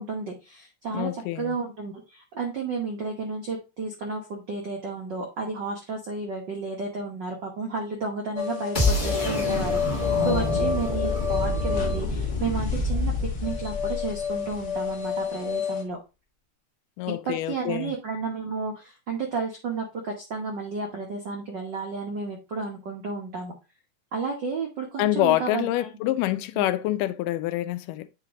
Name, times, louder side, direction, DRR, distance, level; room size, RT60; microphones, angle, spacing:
voice 1, 0.0-1.1 1.4-13.1 13.4-16.0 17.1-23.5 24.1-25.9 26.6-26.7, right 4 dB, 85° right, 0.9 m, -32 dB
voice 2, 0.9-1.6 10.2-10.6 17.0-18.0 25.0-28.1, left 15 dB, 85° left, 2.2 m, -26 dB
sound 1, 8.4-15.8, left 7 dB, 60° left, 1.1 m, -30 dB
sound 2, 8.7-14.7, left 2 dB, 25° left, 1.0 m, -27 dB
8.4 x 3.3 x 3.6 m
omnidirectional pair, 3.7 m